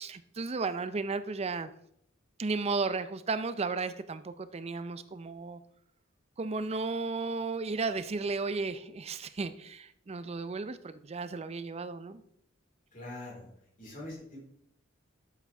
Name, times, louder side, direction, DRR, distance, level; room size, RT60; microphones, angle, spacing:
voice 1, 0.0-1.7 2.4-5.6 6.4-12.2, right 4 dB, 30° right, 13 dB, 0.5 m, -34 dB
voice 2, 12.9-13.5 13.8-14.5, left 1 dB, 40° left, -3 dB, 4.1 m, -43 dB
12.0 x 7.3 x 3.4 m, 0.73 s
head